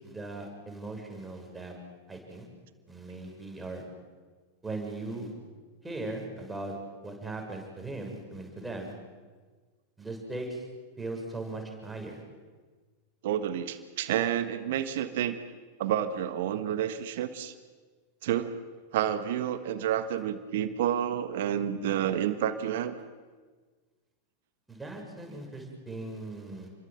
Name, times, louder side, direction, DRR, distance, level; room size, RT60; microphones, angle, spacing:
voice 1, 0.0-1.7 2.1-2.5 2.9-3.8 4.6-5.3 5.8-6.7 7.0-8.9 10.0-10.6 11.0-12.2 24.7-26.7, right 2 dB, 10° right, 2 dB, 6.6 m, -39 dB
voice 2, 13.2-15.4 15.8-17.5 18.2-18.5 18.9-22.9, right 10 dB, 55° right, 10 dB, 1.6 m, -29 dB
29.5 x 23.0 x 7.7 m, 1.4 s
figure-of-eight pair, 90°, 0 cm